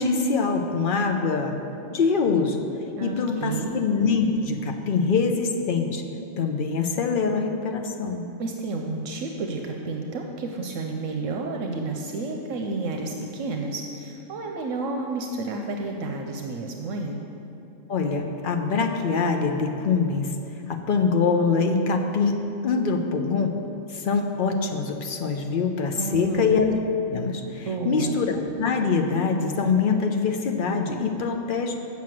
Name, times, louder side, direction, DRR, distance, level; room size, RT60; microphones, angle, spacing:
voice 1, 0.0-1.6 1.9-2.6 3.0-6.0 6.4-8.3 17.9-20.3 20.7-23.5 23.9-26.7 27.1-31.7, left 4 dB, 50° left, 4 dB, 0.7 m, -24 dB
voice 2, 3.0-3.8 8.4-17.2 25.9-26.5 27.7-28.1, right 3 dB, 75° right, 2 dB, 1.0 m, -31 dB
7.3 x 5.8 x 7.5 m, 2.8 s
omnidirectional pair, 1.3 m